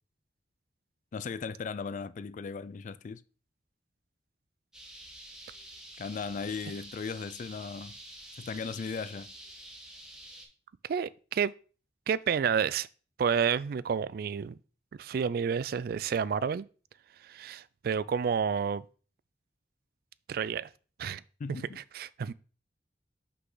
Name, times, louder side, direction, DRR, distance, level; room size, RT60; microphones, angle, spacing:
voice 1, 1.1-3.2 6.0-8.0 8.4-9.3 21.4-21.8, left 5 dB, 45° left, 0.3 m, -37 dB
sound 1, 4.7-10.4, right 1 dB, 5° right, 1.5 m, -48 dB
voice 2, 10.9-11.5 12.1-12.9 13.2-14.6 15.0-16.6 17.2-18.8 20.3-20.7 21.0-21.2 21.9-22.3, right 7 dB, 60° right, 0.3 m, -30 dB
5.9 x 5.6 x 3.9 m
head